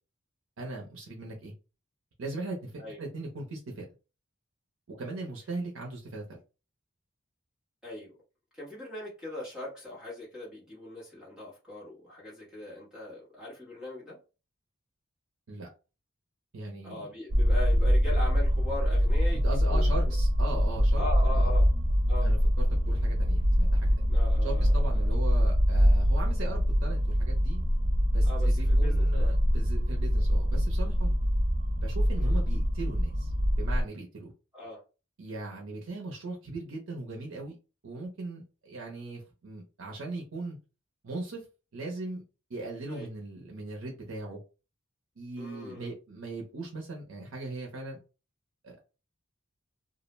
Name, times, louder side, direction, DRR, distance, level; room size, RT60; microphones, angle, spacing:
voice 1, 0.6-1.5 2.2-3.9 4.9-6.4 15.5-15.7 16.5-17.1 19.4-21.0 21.3-21.5 22.2-24.1 24.4-27.6 28.1-31.1 31.8-34.3 35.2-37.5 37.8-40.6 41.0-41.4 41.7-42.2 42.5-44.4 45.2-48.0 48.6-48.8, right 2 dB, 85° right, 0.6 m, -39 dB
voice 2, 7.8-8.1 8.5-14.2 16.8-20.1 20.9-21.7 22.1-22.3 24.1-25.1 28.2-29.3 32.2-32.4 34.5-34.8 42.9-43.1 45.4-45.9, left 1 dB, 5° right, 1.1 m, -40 dB
sound 1, 17.3-33.8, equal, 30° right, 0.4 m, -24 dB
2.4 x 2.1 x 3.0 m
head